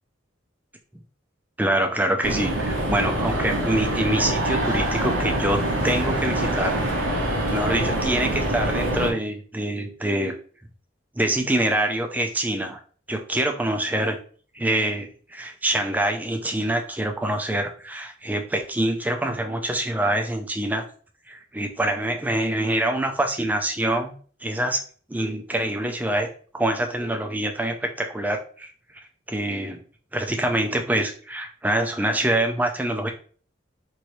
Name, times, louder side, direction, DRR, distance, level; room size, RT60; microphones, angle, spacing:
voice 1, 1.6-6.8 7.5-10.3 11.2-12.8 13.1-14.2 14.5-20.8 21.3-24.1 24.4-24.8 25.1-26.3 26.5-28.7 29.3-29.8 30.1-33.1, right 1 dB, 10° right, 4 dB, 0.3 m, -25 dB
sound 1, 2.2-9.1, right 1 dB, 85° right, 0.9 m, -25 dB
3.0 x 2.6 x 3.1 m, 0.43 s
head